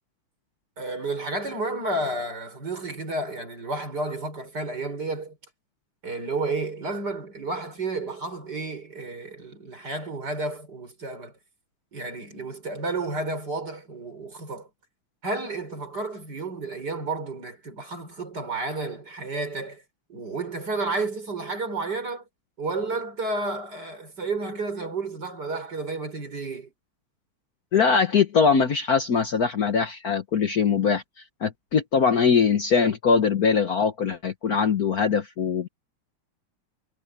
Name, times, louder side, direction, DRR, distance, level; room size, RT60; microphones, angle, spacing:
voice 1, 0.8-5.4 6.0-11.3 11.9-14.7 15.2-19.8 20.1-22.2 22.6-26.7, right 2 dB, 50° right, 6.1 m, -31 dB
voice 2, 27.7-31.0 31.4-35.7, left 6 dB, 50° left, 1.4 m, -22 dB
omnidirectional pair, 2.3 m